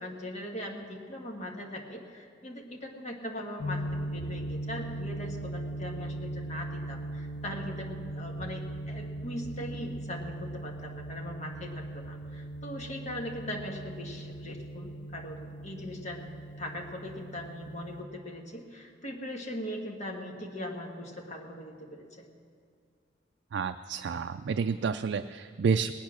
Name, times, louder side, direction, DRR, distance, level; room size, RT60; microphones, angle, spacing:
voice 1, 0.0-16.3 16.6-22.3, left 1 dB, 40° left, 1 dB, 1.6 m, -40 dB
sound 1, 3.6-18.0, right 1 dB, 75° left, 1.2 m, -39 dB
voice 2, 23.5-25.9, right 5 dB, 65° right, 8 dB, 0.3 m, -29 dB
19.5 x 8.5 x 6.1 m, 2.1 s
head